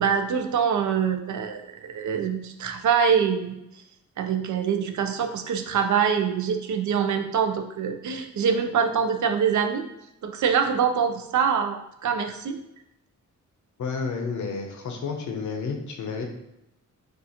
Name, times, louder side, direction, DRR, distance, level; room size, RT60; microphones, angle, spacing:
voice 1, 0.0-3.6 4.2-9.9 10.2-12.6, right 7 dB, 70° right, 6 dB, 0.5 m, -24 dB
voice 2, 13.8-16.3, left 4 dB, 70° left, 3 dB, 0.7 m, -31 dB
6.3 x 2.5 x 2.8 m, 0.85 s
wide cardioid pair, 175°, 31 cm